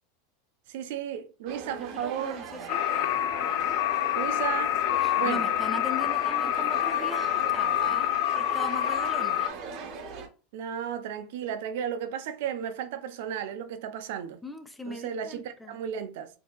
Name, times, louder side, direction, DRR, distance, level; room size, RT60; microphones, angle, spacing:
voice 1, 0.7-2.4 4.1-4.8 5.1-5.4 10.5-14.4 14.9-16.3, right 9 dB, 70° right, 0.6 m, -34 dB
sound 1, 1.5-10.3, right 6 dB, 50° right, 0.9 m, -40 dB
voice 2, 1.8-3.1 5.0-9.5 14.4-15.8, left 2 dB, 5° left, 0.6 m, -40 dB
sound 2, 2.7-9.5, left 12 dB, 65° left, 0.3 m, -27 dB
4.5 x 2.8 x 2.2 m
supercardioid pair, 120°, 0 cm